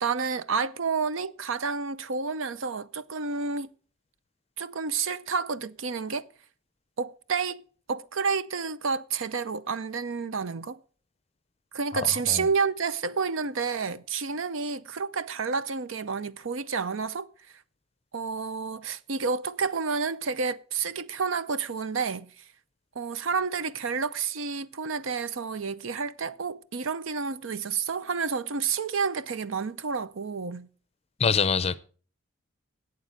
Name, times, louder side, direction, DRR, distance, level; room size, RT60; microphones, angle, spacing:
voice 1, 0.0-3.7 4.6-6.3 7.0-7.6 7.9-10.8 11.7-17.3 18.1-22.4 22.9-30.7, right 5 dB, 75° right, 0.6 m, -30 dB
voice 2, 11.9-12.5 31.2-31.8, left 5 dB, 30° left, 0.6 m, -25 dB
12.0 x 8.4 x 6.5 m
head